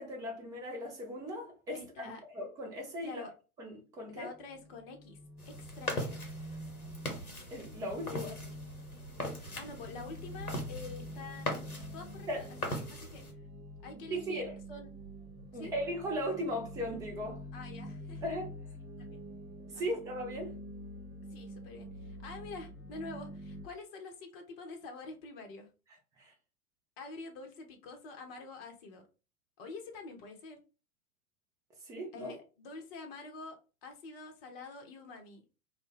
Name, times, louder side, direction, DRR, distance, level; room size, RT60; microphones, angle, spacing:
voice 1, 0.0-3.3 3.6-4.3 7.5-8.3 12.3-12.4 14.1-14.5 15.5-17.4 18.2-18.5 19.8-20.6 26.2-26.3 31.9-32.3, equal, 10° right, 0.4 m, -37 dB
voice 2, 1.7-2.2 3.0-3.3 4.1-5.2 5.5-6.2 8.1-8.5 9.5-13.2 13.8-14.9 15.5-15.7 17.5-18.2 19.0-19.2 19.7-20.0 21.3-25.7 27.0-29.0 29.6-30.6 32.1-35.4, left 3 dB, 40° left, 0.7 m, -47 dB
sound 1, 4.1-23.7, equal, 70° right, 0.8 m, -47 dB
sound 2, 5.4-13.3, left 1 dB, 85° left, 0.8 m, -41 dB
2.1 x 2.1 x 3.2 m
figure-of-eight pair, 95°, 43 cm